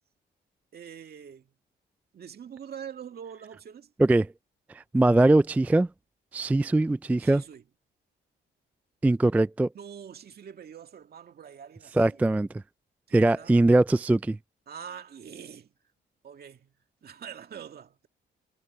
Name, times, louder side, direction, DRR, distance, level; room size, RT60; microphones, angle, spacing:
voice 1, 0.7-1.5 2.1-3.9 7.2-7.6 9.7-12.4 13.1-13.5 14.7-15.7 16.2-16.7 17.0-18.1, right 8 dB, 50° right, 2.2 m, -44 dB
voice 2, 4.7-5.9 6.3-7.4 9.0-9.7 12.0-12.5 13.1-14.4, right 2 dB, 10° right, 0.3 m, -21 dB
cardioid pair, 90°, 20 cm